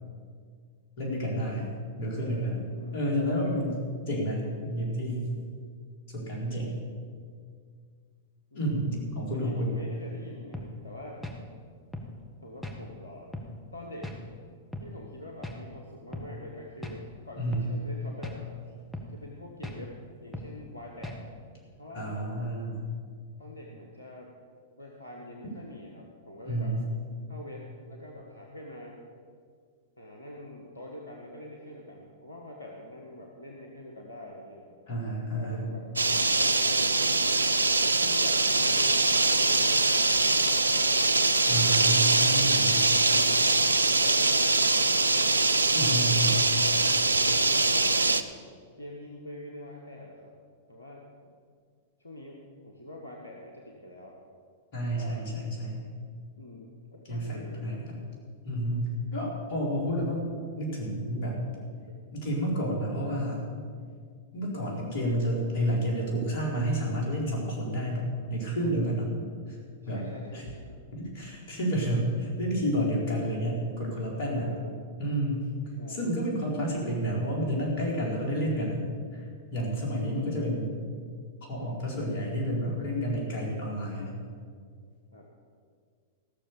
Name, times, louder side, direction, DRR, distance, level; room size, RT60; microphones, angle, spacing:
voice 1, 1.0-1.6 2.0-5.3 6.1-6.8 8.5-9.8 17.4-17.7 21.9-22.9 26.4-26.9 34.9-35.7 41.5-42.8 45.7-46.4 54.7-55.9 57.1-58.0 58.4-60.3 60.5-61.4 62.1-63.4 64.3-69.1 69.5-69.6 69.9-70.0 70.3-70.4 70.9-74.5 75.0-75.5 75.9-78.9 79.1-79.2 79.5-80.7 81.4-84.2, equal, 55° left, -2 dB, 4.2 m, -30 dB
voice 2, 2.6-3.1 8.5-9.0 9.3-11.2 12.4-13.3 13.7-14.1 14.8-18.5 19.1-21.2 21.8-22.3 23.4-24.3 24.8-26.7 27.3-29.0 30.0-34.8 35.3-35.9 36.6-37.2 38.0-39.0 39.3-39.8 40.3-41.0 42.2-43.5 43.9-45.3 45.7-46.1 47.1-48.0 48.7-50.3 50.7-51.1 52.0-54.2 54.9-55.2 56.4-57.7 69.8-70.8 74.2-74.8 75.8-76.1 79.9-80.5 85.1-85.3, left 1 dB, 85° left, 0 dB, 1.3 m, -45 dB
sound 1, 10.5-10.7 11.2-11.4 11.9-12.1 12.6-12.8 13.3-13.5 14.0-14.2 14.7-14.9 15.4-15.6 16.1-16.3 16.8-17.0 17.5-17.7 18.2-18.4 18.9-19.1 19.6-19.8 20.3-20.5 21.0-21.2, left 1 dB, 5° left, 1.5 m, -38 dB
sound 2, 36.0-48.2, right 3 dB, 85° right, 0.5 m, -23 dB
15.5 x 6.8 x 7.0 m, 2.1 s
figure-of-eight pair, 100°, 0 cm